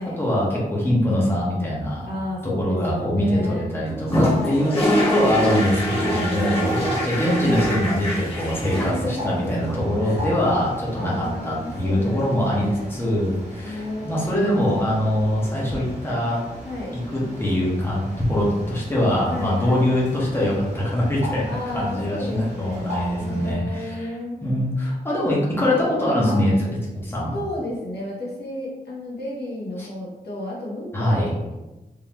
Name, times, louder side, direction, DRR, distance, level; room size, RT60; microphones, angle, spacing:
voice 1, 0.2-2.0 2.4-16.4 16.9-24.1 24.4-26.5 27.0-27.3 29.8-29.9 30.9-31.3, left 1 dB, 15° left, -6 dB, 1.3 m, -23 dB
voice 2, 2.1-3.7 4.2-5.2 5.9-6.5 8.7-10.3 11.0-13.0 13.6-14.7 16.6-17.0 19.3-19.9 21.5-24.4 26.3-26.5 27.3-31.6, left 1 dB, 90° left, -5 dB, 1.2 m, -32 dB
sound 1, 3.8-9.0 9.6-10.5 12.6-12.7 12.9-13.0 15.3-15.5 21.4-21.5 21.8-21.9, equal, 35° left, 1.3 m, -25 dB
Bird, 4.8-23.5, equal, 45° right, 1.4 m, -39 dB
3.6 x 3.1 x 3.1 m, 1.0 s
wide cardioid pair, 85°, 16 cm